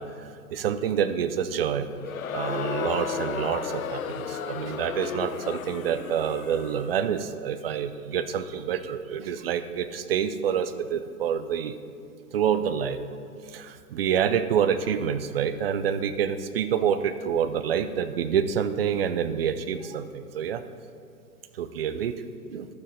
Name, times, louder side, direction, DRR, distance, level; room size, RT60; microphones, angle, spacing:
voice 1, 0.0-1.9 2.3-11.8 12.3-13.0 13.5-20.6 21.6-22.1 22.5-22.7, right 8 dB, 40° right, 11 dB, 0.5 m, -27 dB
Crowd, 1.9-7.0, left 7 dB, 65° left, 0.6 m, -33 dB
12.0 x 6.7 x 4.1 m, 2.5 s
figure-of-eight pair, 120°, 46 cm